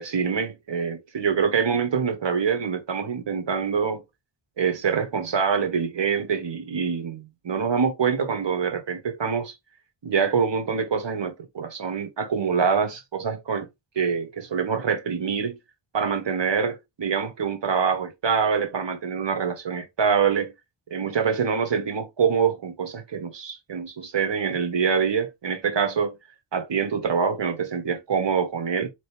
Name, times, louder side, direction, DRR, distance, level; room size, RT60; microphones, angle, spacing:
voice 1, 0.0-4.0 4.6-9.5 10.0-13.7 13.9-15.6 15.9-20.5 20.9-26.2 26.5-28.9, right 6 dB, 60° right, 1.5 m, -25 dB
3.8 x 3.1 x 3.5 m
cardioid pair, 65°, 49 cm